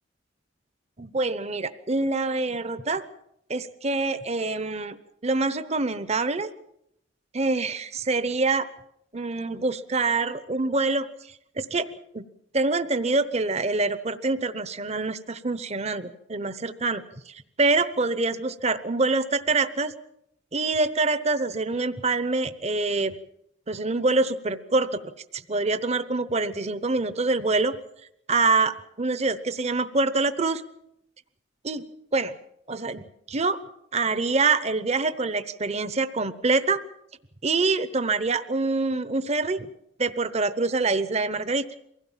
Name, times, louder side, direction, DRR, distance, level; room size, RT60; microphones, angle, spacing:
voice 1, 1.0-3.0 3.5-5.0 5.2-6.5 7.3-8.7 9.1-11.1 11.6-11.9 12.1-12.2 12.5-19.9 20.5-23.1 23.7-25.0 25.3-27.7 28.3-30.6 31.6-31.8 32.1-32.3 32.7-33.6 33.9-36.8 37.4-39.7 40.0-41.6, right 3 dB, 35° right, 13 dB, 0.9 m, -25 dB
23.5 x 16.5 x 7.4 m, 0.78 s
head